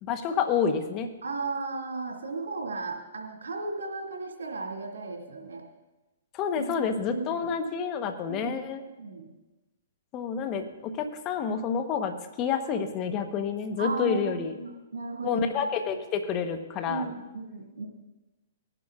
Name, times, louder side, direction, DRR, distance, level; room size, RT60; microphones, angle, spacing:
voice 1, 0.0-1.1 6.3-8.8 10.1-14.6 15.2-17.1, left 6 dB, 30° left, 7 dB, 1.1 m, -29 dB
voice 2, 1.2-5.6 6.6-6.8 7.1-7.5 8.3-9.3 13.8-15.6 15.9-16.0 16.9-17.8, right 3 dB, 85° right, 0 dB, 2.3 m, -35 dB
18.5 x 10.5 x 2.5 m, 1.1 s
hypercardioid pair, 130°, 0 cm